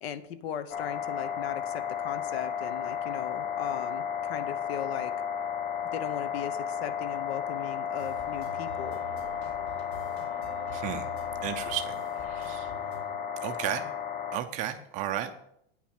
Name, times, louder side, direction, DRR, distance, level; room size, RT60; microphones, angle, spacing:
voice 1, 0.0-5.1 5.9-9.0, left 9 dB, 70° left, 12 dB, 1.0 m, -38 dB
sound 1, 0.7-14.4, left 8 dB, 25° left, 0.5 m, -33 dB
sound 2, 8.0-13.1, right 1 dB, 85° left, 3.5 m, -47 dB
voice 2, 10.7-11.1 11.4-12.0 12.3-12.7 13.4-13.8 14.3-15.3, right 11 dB, 25° right, 8 dB, 0.5 m, -33 dB
9.5 x 5.9 x 6.5 m, 0.73 s
supercardioid pair, 170°, 32 cm